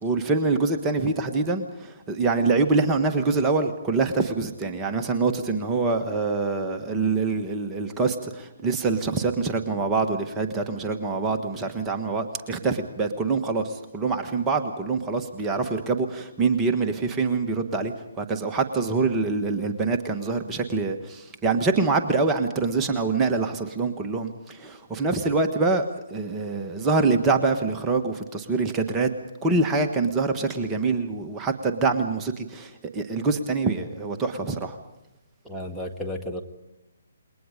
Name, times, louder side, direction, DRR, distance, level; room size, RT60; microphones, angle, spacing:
voice 1, 0.0-25.8 26.1-29.1 29.4-34.8, right 3 dB, 15° right, 4 dB, 1.4 m, -25 dB
voice 2, 35.4-36.4, left 1 dB, ahead, -3 dB, 1.6 m, -32 dB
28.0 x 22.5 x 5.2 m, 0.94 s
figure-of-eight pair, 140°, 0 cm